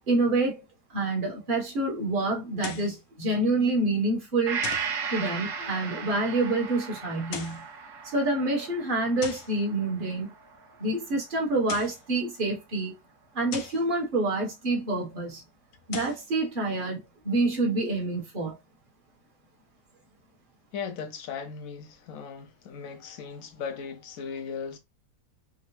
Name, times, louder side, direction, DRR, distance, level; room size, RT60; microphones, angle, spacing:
voice 1, 0.1-0.6 0.9-4.6 5.1-7.6 8.0-10.3 10.8-12.9 13.3-15.4 15.9-18.5, right 2 dB, 35° right, 1.0 m, -27 dB
sound 1, 2.6-3.0 4.6-5.0 7.2-7.7 9.2-9.6 11.5-12.0 13.5-13.9 15.7-16.3, left 8 dB, 85° left, 1.2 m, -39 dB
Gong, 4.5-12.1 12.5-12.6, right 6 dB, 70° right, 1.5 m, -37 dB
voice 2, 20.7-24.8, left 6 dB, 70° left, 0.8 m, -37 dB
3.7 x 2.0 x 2.9 m
omnidirectional pair, 1.8 m